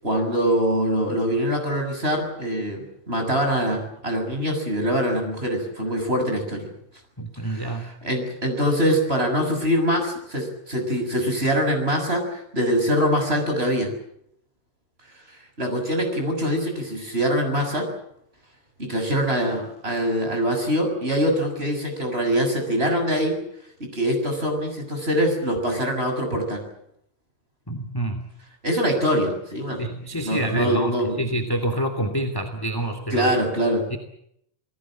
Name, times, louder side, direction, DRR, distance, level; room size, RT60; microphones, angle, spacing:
voice 1, 0.0-6.7 7.4-13.9 15.6-17.9 18.8-23.4 23.8-26.6 28.6-29.8 30.1-31.3 33.1-33.9, equal, 20° right, 4 dB, 7.1 m, -24 dB
voice 2, 7.2-7.8 27.7-28.3 29.8-33.3 33.9-34.0, right 1 dB, 10° left, 6 dB, 2.2 m, -27 dB
29.0 x 19.5 x 7.6 m, 0.74 s
omnidirectional pair, 3.3 m